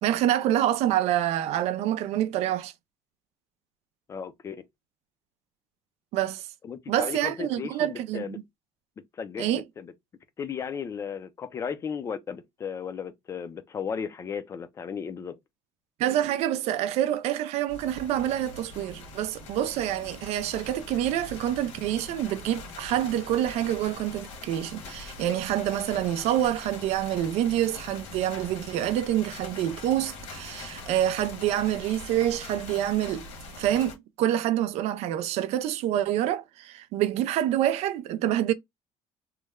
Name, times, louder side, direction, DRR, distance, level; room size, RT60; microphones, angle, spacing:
voice 1, 0.0-2.7 6.1-6.5 6.9-8.4 9.4-9.6 16.0-33.3 33.6-38.5, right 12 dB, 70° right, 0.4 m, -27 dB
voice 2, 4.1-4.6 6.6-8.4 9.2-9.9 10.4-15.3, left 6 dB, 25° left, 0.4 m, -35 dB
sound 1, 17.7-34.0, left 3 dB, 70° left, 1.4 m, -43 dB
3.1 x 2.1 x 3.5 m
cardioid pair, 180°, 11 cm